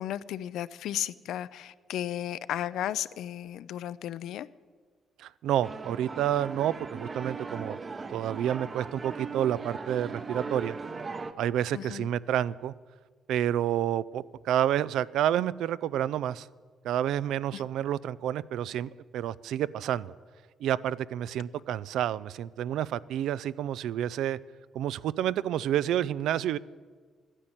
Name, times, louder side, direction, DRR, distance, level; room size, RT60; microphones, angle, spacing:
voice 1, 0.0-4.5 11.7-12.1 17.5-17.6, left 11 dB, 80° left, 16 dB, 0.4 m, -34 dB
voice 2, 5.2-7.8 8.1-10.8 11.4-12.7 13.3-16.5 16.8-20.1 20.6-24.4 24.7-26.6, right 11 dB, 80° right, 18 dB, 0.4 m, -29 dB
sound 1, 5.6-11.3, right 4 dB, 35° right, 0.9 m, -38 dB
12.5 x 9.9 x 8.9 m, 1.6 s
cardioid pair, 90°, 0 cm